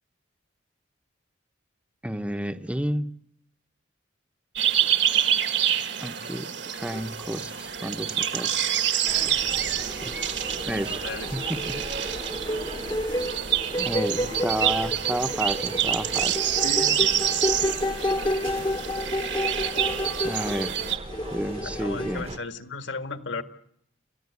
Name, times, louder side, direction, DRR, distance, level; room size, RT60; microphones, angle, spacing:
voice 1, 2.0-3.1 6.0-8.5 10.0-10.2 10.7-11.0 11.3-11.9 13.8-16.5 20.2-20.8 21.3-22.3, equal, 5° right, 9 dB, 0.9 m, -31 dB
sound 1, 4.6-21.0, right 10 dB, 60° right, 1.8 m, -27 dB
sound 2, 6.9-7.7 8.0-22.2, left 1 dB, 20° left, 1.0 m, -32 dB
sound 3, 9.0-22.4, right 2 dB, 30° right, 1.1 m, -40 dB
voice 2, 11.0-11.4 16.6-17.2 21.8-23.4, left 3 dB, 65° left, 8 dB, 1.9 m, -34 dB
29.5 x 15.0 x 9.6 m, 0.70 s
head